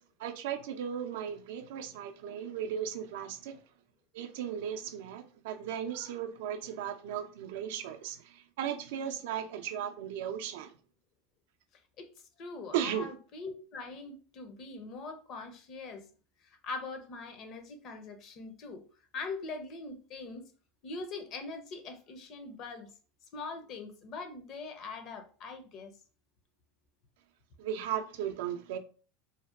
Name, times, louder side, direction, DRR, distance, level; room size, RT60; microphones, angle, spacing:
voice 1, 0.2-3.6 4.1-10.7 12.7-13.1 27.6-28.8, right 9 dB, 75° right, 0.3 m, -36 dB
voice 2, 12.4-16.1 16.4-18.8 19.1-20.5 20.8-22.9 23.3-25.9, left 3 dB, 50° left, 0.6 m, -42 dB
2.7 x 2.2 x 2.3 m
hypercardioid pair, 100°, 0 cm